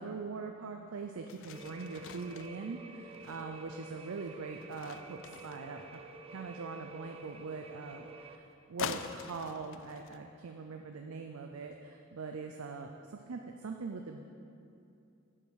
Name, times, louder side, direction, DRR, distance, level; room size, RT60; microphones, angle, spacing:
voice 1, 0.0-6.0 6.3-14.2, right 4 dB, 85° right, 4 dB, 0.5 m, -42 dB
sound 1, 0.8-0.9 1.2-6.2 8.8-10.2, left 7 dB, 65° left, 0.4 m, -44 dB
sound 2, 1.5-8.4, right 3 dB, 30° right, 0.4 m, -50 dB
8.6 x 5.5 x 6.4 m, 2.6 s
head